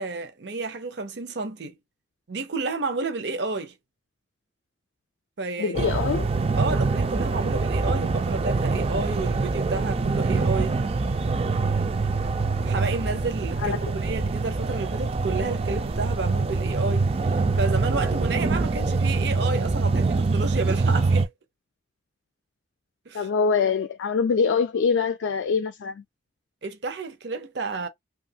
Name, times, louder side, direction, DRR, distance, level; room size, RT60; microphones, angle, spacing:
voice 1, 0.0-1.7 2.3-3.7 5.4-5.9 6.6-10.8 12.6-21.3 23.1-23.3 26.6-27.9, right 3 dB, 65° right, 0.6 m, -31 dB
voice 2, 5.6-6.3 13.6-13.8 23.1-26.0, left 5 dB, 85° left, 0.3 m, -24 dB
sound 1, 5.7-21.3, right 3 dB, 30° right, 0.3 m, -24 dB
2.7 x 2.4 x 2.7 m
head